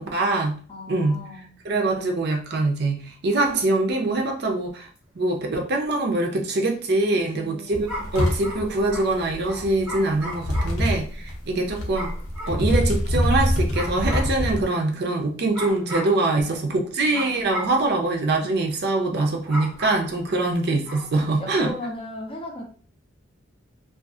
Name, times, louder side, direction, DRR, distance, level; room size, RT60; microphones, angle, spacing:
voice 1, 0.0-0.6 0.9-1.2 1.6-4.9 5.2-12.1 12.5-21.7, right 2 dB, 55° right, 2 dB, 0.5 m, -24 dB
voice 2, 0.7-1.5 7.3-7.9 10.5-11.0 16.3-17.3 21.4-22.6, left 1 dB, 30° left, 2 dB, 0.5 m, -38 dB
sound 1, 5.0-5.1 7.9-10.9 11.9-12.6 13.7-14.4 15.5-16.2 17.1-17.8 19.5-20.2 20.8-21.2 21.5-21.8, equal, 5° right, 0.9 m, -35 dB
sound 2, 7.7-14.6, equal, 85° left, 0.7 m, -25 dB
2.6 x 2.4 x 2.3 m, 0.42 s
head